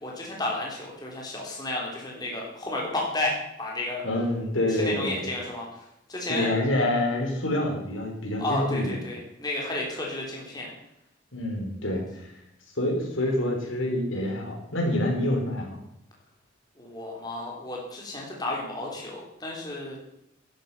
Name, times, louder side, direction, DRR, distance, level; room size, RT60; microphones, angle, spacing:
voice 1, 0.0-4.0 4.7-5.7 6.1-6.5 8.4-10.7 16.8-20.0, left 2 dB, 20° left, -2 dB, 3.6 m, -32 dB
voice 2, 4.0-5.3 6.3-8.9 11.3-12.3 12.8-15.8, left 1 dB, 90° left, 1 dB, 4.2 m, -27 dB
12.5 x 11.5 x 5.6 m, 0.82 s
head